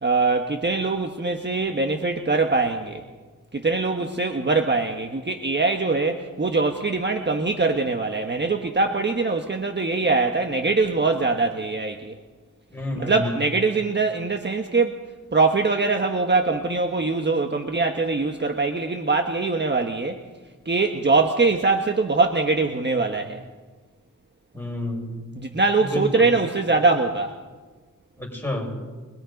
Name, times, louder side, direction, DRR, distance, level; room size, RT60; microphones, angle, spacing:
voice 1, 0.0-3.0 3.5-12.1 13.0-15.0 15.3-20.2 20.6-23.4 25.4-27.3, right 3 dB, 35° right, 4 dB, 1.4 m, -22 dB
voice 2, 12.7-13.4 24.5-25.3 25.9-26.3 28.2-28.7, left 1 dB, 5° left, -1 dB, 6.5 m, -29 dB
25.0 x 21.5 x 5.3 m, 1.4 s
wide cardioid pair, 95°, 33 cm